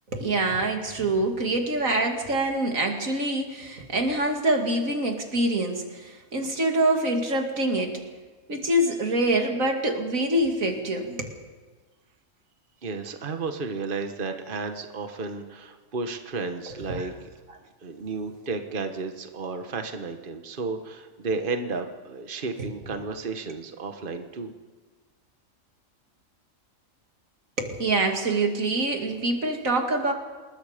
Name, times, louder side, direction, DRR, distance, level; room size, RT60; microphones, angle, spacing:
voice 1, 0.1-8.0 8.5-11.3 16.9-17.0 27.6-30.1, right 1 dB, 90° right, 3 dB, 2.8 m, -25 dB
voice 2, 12.8-17.3 17.8-24.5, right 4 dB, 40° right, 6 dB, 1.4 m, -33 dB
27.0 x 21.0 x 5.1 m, 1.4 s
omnidirectional pair, 1.4 m